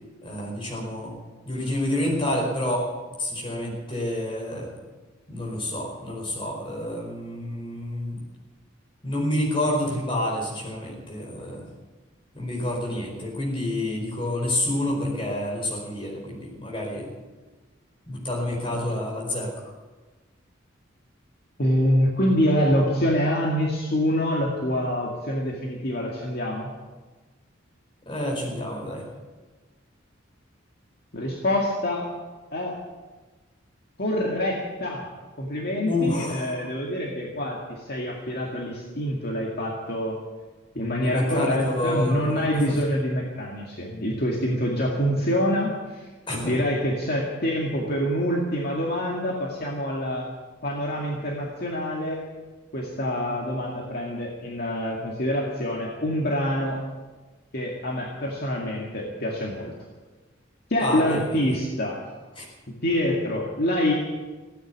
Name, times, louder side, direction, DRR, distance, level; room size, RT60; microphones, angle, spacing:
voice 1, 0.2-1.1 1.4-2.8 3.2-4.7 5.3-8.2 9.0-11.6 12.3-17.1 18.1-19.7 28.1-29.0 35.9-36.5 41.0-42.3 42.7-42.8 46.3-46.6 60.8-61.5 62.4-62.5, left 1 dB, 25° left, -3 dB, 4.8 m, -28 dB
voice 2, 21.6-26.7 31.1-32.1 32.5-32.8 34.0-35.0 35.4-40.2 40.8-50.3 50.6-52.3 52.7-56.8 57.5-59.7 60.7-62.0 62.7-63.9, equal, 50° left, -2 dB, 2.2 m, -26 dB
16.0 x 9.4 x 9.3 m, 1.3 s
head